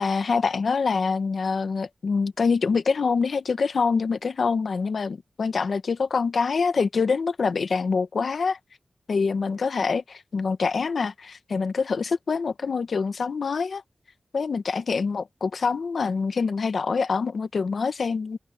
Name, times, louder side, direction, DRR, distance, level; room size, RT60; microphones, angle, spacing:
voice 1, 0.0-8.6 9.1-13.8 14.3-18.4, left 5 dB, 85° left, 1.1 m, -25 dB
open air
wide cardioid pair, 90°, 0 cm